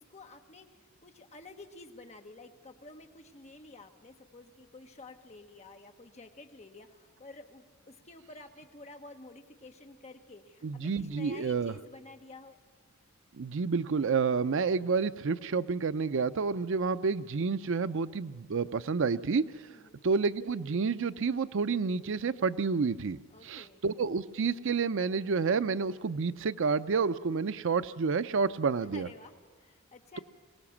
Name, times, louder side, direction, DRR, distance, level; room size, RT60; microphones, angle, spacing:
voice 1, 0.0-12.6 19.7-20.0 23.3-23.8 28.9-30.2, left 2 dB, 35° left, 5 dB, 1.3 m, -51 dB
voice 2, 10.6-11.7 13.3-19.5 20.0-23.2 23.4-29.1, right 5 dB, 65° right, 14 dB, 0.5 m, -29 dB
22.0 x 18.5 x 7.2 m, 1.5 s
head